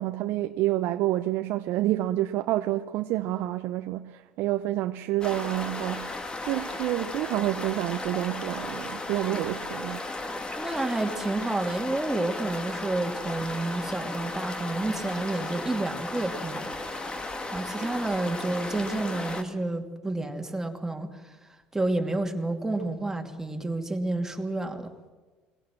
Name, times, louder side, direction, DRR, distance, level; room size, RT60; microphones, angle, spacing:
voice 1, 0.0-6.1 6.5-10.0, right 15 dB, 65° right, 0.7 m, -28 dB
sound 1, 5.2-19.4, left 2 dB, 25° left, 2.4 m, -35 dB
voice 2, 10.6-16.7 17.3-21.1 21.7-24.9, right 2 dB, 10° right, 2.8 m, -30 dB
23.0 x 17.0 x 7.6 m
hypercardioid pair, 75°, 4 cm